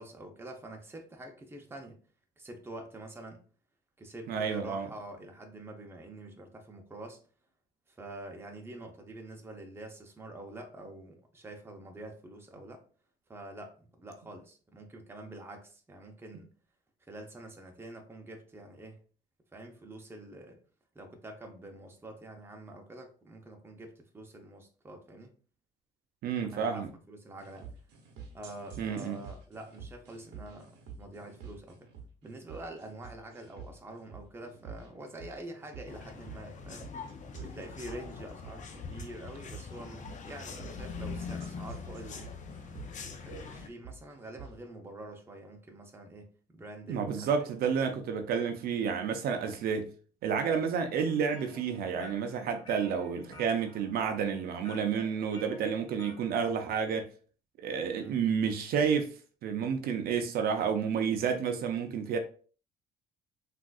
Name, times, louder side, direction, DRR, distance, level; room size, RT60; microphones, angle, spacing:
voice 1, 0.0-2.0 2.4-3.4 4.0-7.2 7.9-12.8 13.3-16.5 17.1-19.0 19.5-20.6 20.9-25.3 26.5-27.7 28.3-31.8 32.2-36.9 37.4-42.4 43.0-47.3 49.3-49.5 58.0-58.2, right 1 dB, 15° right, 0.6 m, -46 dB
voice 2, 4.3-4.9 26.2-26.9 28.8-29.2 46.9-49.9 50.2-57.1 57.6-59.1 59.4-62.2, right 6 dB, 65° right, 0.5 m, -30 dB
sound 1, 27.4-44.5, right 5 dB, 90° right, 0.8 m, -49 dB
sound 2, 35.9-43.7, left 5 dB, 50° left, 0.5 m, -43 dB
sound 3, 51.0-56.3, left 1 dB, 30° left, 1.4 m, -52 dB
3.6 x 2.5 x 2.3 m
cardioid pair, 110°, 17 cm